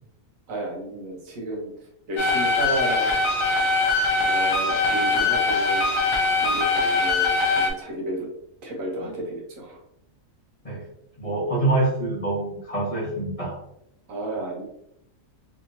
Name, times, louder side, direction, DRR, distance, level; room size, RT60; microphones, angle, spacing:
voice 1, 0.5-1.7 2.1-3.2 4.2-5.9 6.4-8.3 8.6-9.8 14.1-14.6, right 1 dB, 75° right, -1 dB, 1.3 m, -32 dB
sound 1, 2.2-7.7, left 3 dB, 55° left, 0.3 m, -22 dB
voice 2, 11.2-13.6, right 2 dB, 30° left, -6 dB, 0.8 m, -25 dB
3.3 x 2.9 x 2.7 m, 0.77 s
omnidirectional pair, 1.4 m